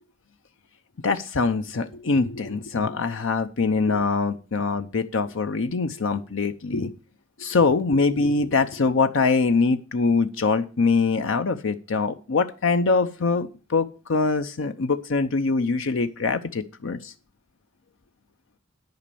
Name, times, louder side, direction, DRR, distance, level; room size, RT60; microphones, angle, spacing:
voice 1, 1.0-6.9 7.4-17.1, left 4 dB, 70° left, 9 dB, 0.6 m, -23 dB
10.5 x 5.2 x 8.4 m, 0.35 s
head